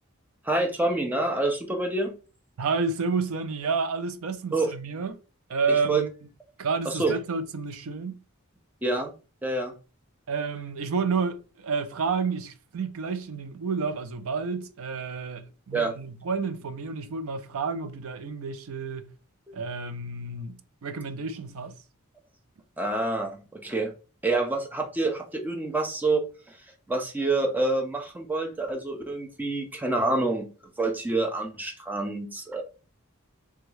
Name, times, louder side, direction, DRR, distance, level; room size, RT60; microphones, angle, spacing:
voice 1, 0.4-2.1 4.5-4.7 5.9-6.0 6.9-7.1 8.8-9.1 9.4-9.7 15.7-15.9 22.8-23.9 24.2-26.2 26.5-26.6 26.9-30.5 30.8-32.6, right 2 dB, 10° right, 0.4 m, -27 dB
voice 2, 2.6-5.2 5.5-6.1 6.6-8.2 10.3-19.1 19.5-21.8, right 4 dB, 70° right, 0.4 m, -30 dB
3.5 x 2.2 x 3.1 m
head